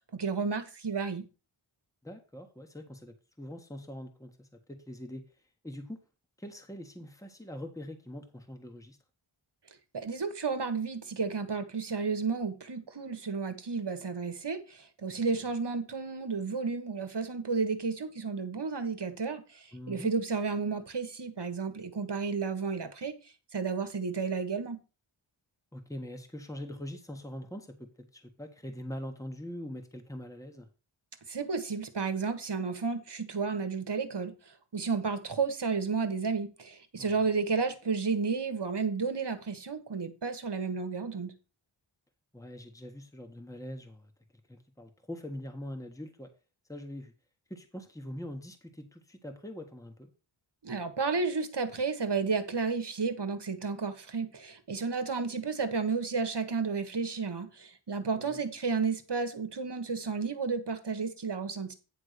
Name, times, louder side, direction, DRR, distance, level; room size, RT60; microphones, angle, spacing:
voice 1, 0.1-1.2 9.9-23.1 23.5-24.8 31.3-34.3 34.7-41.3 50.6-61.7, right 4 dB, 55° right, 1.4 m, -32 dB
voice 2, 2.0-5.2 5.6-6.0 6.4-9.0 15.1-15.2 19.7-20.1 25.7-30.7 37.0-37.1 42.3-44.1 44.5-46.3 46.7-47.1 47.5-50.1 58.0-58.4, left 1 dB, 5° left, 1.4 m, -43 dB
9.8 x 3.6 x 6.7 m
wide cardioid pair, 50°, 49 cm